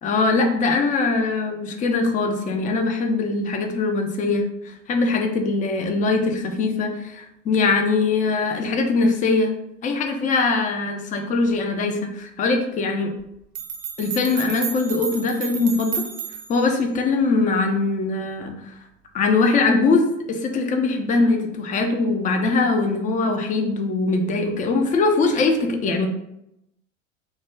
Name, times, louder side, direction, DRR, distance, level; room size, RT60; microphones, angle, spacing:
voice 1, 0.0-9.5 9.8-13.1 14.0-16.0 16.5-18.7 19.1-26.1, left 3 dB, 20° left, 4 dB, 0.4 m, -22 dB
sound 1, 13.2-13.3 13.5-16.7, right 8 dB, 45° right, 0.5 m, -32 dB
2.2 x 2.2 x 3.1 m, 0.82 s
figure-of-eight pair, 75°, 38 cm